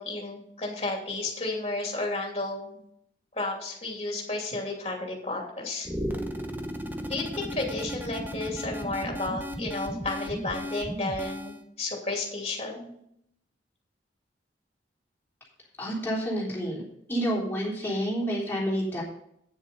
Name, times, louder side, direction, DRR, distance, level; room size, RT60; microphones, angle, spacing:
voice 1, 0.0-2.8 3.3-5.9 7.0-12.9, left 2 dB, 35° left, 0 dB, 2.8 m, -32 dB
sound 1, 5.8-11.6, equal, 10° right, 0.9 m, -35 dB
voice 2, 15.8-16.8 17.1-19.0, equal, 10° left, -6 dB, 3.6 m, -29 dB
9.3 x 7.4 x 5.4 m, 0.74 s
head